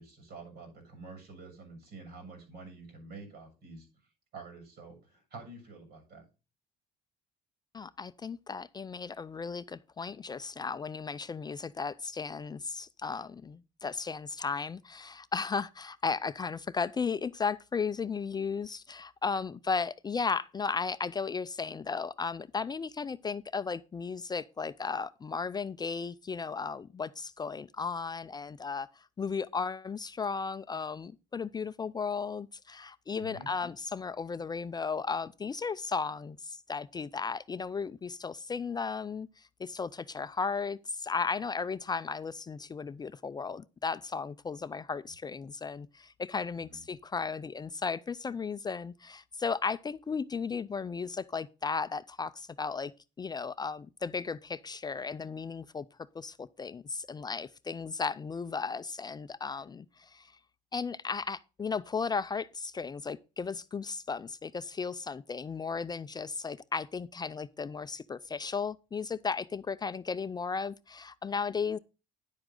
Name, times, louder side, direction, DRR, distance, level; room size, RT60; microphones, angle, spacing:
voice 1, 0.0-3.9 4.3-6.2 33.2-33.5 46.7-46.8, right 3 dB, 70° right, 7.1 m, -48 dB
voice 2, 7.7-52.9 53.2-55.9 56.1-60.3 60.7-71.8, left 5 dB, 25° left, 0.4 m, -35 dB
10.5 x 7.9 x 3.8 m
cardioid pair, 110°, 17 cm